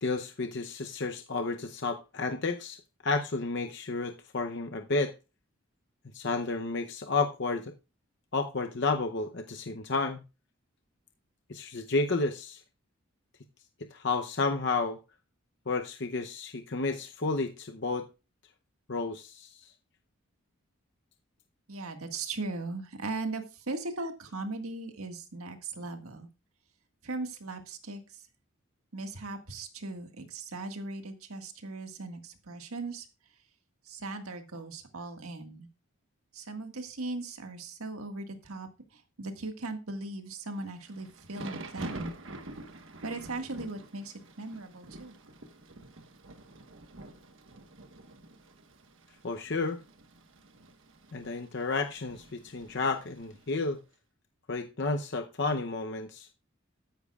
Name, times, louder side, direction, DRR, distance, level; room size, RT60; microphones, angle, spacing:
voice 1, 0.0-5.1 6.1-7.7 8.3-10.2 11.5-12.6 13.9-15.0 15.7-18.1 18.9-19.6 49.2-49.8 51.1-53.8 54.5-56.3, left 3 dB, 55° left, 5 dB, 0.7 m, -31 dB
voice 2, 21.7-26.3 27.0-28.2 28.9-33.1 33.9-35.7 36.3-42.1 43.0-45.1, right 3 dB, 85° right, 5 dB, 1.8 m, -38 dB
Thunder / Rain, 40.6-53.7, right 2 dB, 60° right, 1.4 m, -47 dB
13.5 x 10.0 x 2.4 m, 0.30 s
head